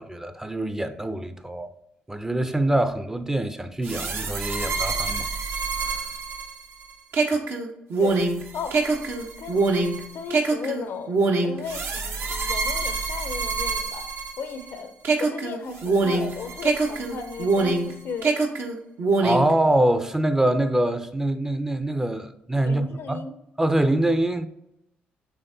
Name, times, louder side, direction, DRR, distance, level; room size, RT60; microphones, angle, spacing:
voice 1, 0.0-1.7 2.1-5.3 5.8-6.0 19.2-23.2 23.6-24.5, right 1 dB, 10° right, 0.5 m, -24 dB
sound 1, 3.8-14.7 15.0-17.9 18.2-19.5, right 3 dB, 60° right, 0.8 m, -25 dB
voice 2, 10.1-14.1 14.4-14.9 15.2-18.4 22.6-23.3, left 5 dB, 65° left, 0.6 m, -35 dB
5.6 x 3.5 x 2.7 m
supercardioid pair, 55°, 4 cm